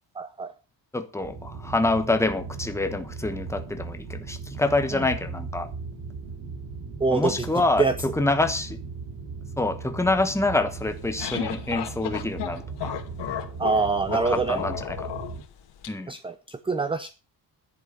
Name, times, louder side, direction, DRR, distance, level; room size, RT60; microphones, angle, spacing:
voice 1, 0.2-0.5 4.9-5.1 7.0-7.5 7.8-7.9 13.6-14.6 16.1-17.1, right 4 dB, 15° right, 0.7 m, -25 dB
voice 2, 0.9-5.7 7.1-8.8 9.6-13.0 14.2-15.0 15.9-16.1, left 2 dB, 5° left, 1.3 m, -26 dB
sound 1, 1.2-15.4, right 4 dB, 85° right, 3.3 m, -38 dB
sound 2, 10.8-15.9, left 10 dB, 90° left, 2.6 m, -34 dB
10.5 x 8.2 x 7.0 m
cardioid pair, 165°, 41 cm